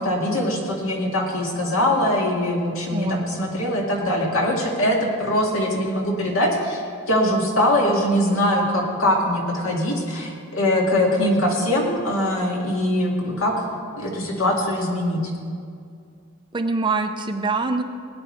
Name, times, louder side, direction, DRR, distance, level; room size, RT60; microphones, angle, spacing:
voice 1, 0.0-6.8 7.1-13.6 13.9-15.2, left 1 dB, 70° left, -1 dB, 2.1 m, -22 dB
voice 2, 2.9-3.3 16.5-17.8, right 3 dB, 20° right, 7 dB, 0.5 m, -24 dB
17.5 x 9.5 x 4.4 m, 2.3 s
head